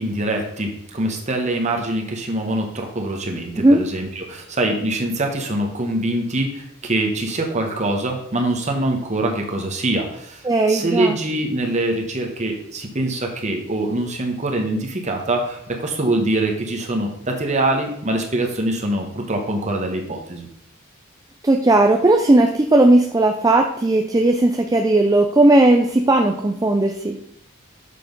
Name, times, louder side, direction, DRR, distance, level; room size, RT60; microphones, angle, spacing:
voice 1, 0.0-20.5, right 1 dB, 35° right, 2 dB, 1.1 m, -24 dB
voice 2, 10.4-11.2 21.4-27.2, right 2 dB, 15° right, 4 dB, 0.4 m, -16 dB
6.8 x 5.9 x 5.3 m, 0.73 s
head